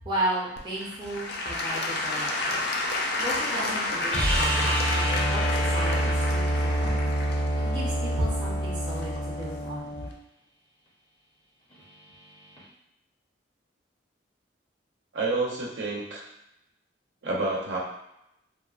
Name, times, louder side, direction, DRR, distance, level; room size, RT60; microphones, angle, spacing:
voice 1, 0.0-2.6 3.2-7.0 7.6-10.0, right 1 dB, 25° right, -7 dB, 0.6 m, -34 dB
Applause / Crowd, 0.6-9.4 10.1-10.2, left 2 dB, 55° left, 0.3 m, -31 dB
sound 1, 4.1-10.1 12.6-12.7, right 1 dB, 25° left, 0.7 m, -26 dB
voice 2, 15.1-16.3 17.2-17.8, right 3 dB, 75° right, -4 dB, 0.6 m, -29 dB
2.8 x 2.1 x 2.3 m, 0.83 s
head